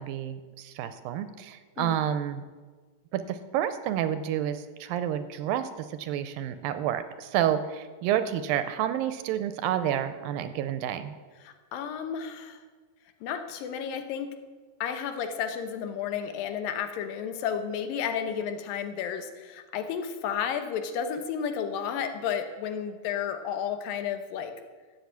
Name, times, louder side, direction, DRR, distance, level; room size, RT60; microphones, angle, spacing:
voice 1, 0.0-2.5 3.1-11.1, right 10 dB, 80° right, 11 dB, 2.3 m, -29 dB
voice 2, 11.4-12.6 13.2-14.3 14.8-24.5, left 7 dB, 75° left, 8 dB, 2.6 m, -32 dB
12.5 x 7.9 x 8.3 m, 1.4 s
omnidirectional pair, 4.2 m